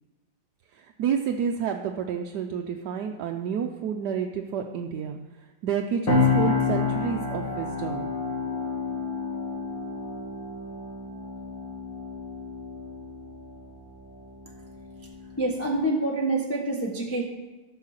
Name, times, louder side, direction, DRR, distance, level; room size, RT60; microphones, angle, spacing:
voice 1, 0.7-5.2 5.6-8.1, right 7 dB, 70° right, 3 dB, 1.2 m, -29 dB
sound 1, 6.1-15.8, left 5 dB, 80° left, 2.9 m, -30 dB
voice 2, 15.4-17.2, right 2 dB, 10° left, -2 dB, 1.0 m, -27 dB
13.5 x 5.7 x 6.5 m, 1.2 s
omnidirectional pair, 2.0 m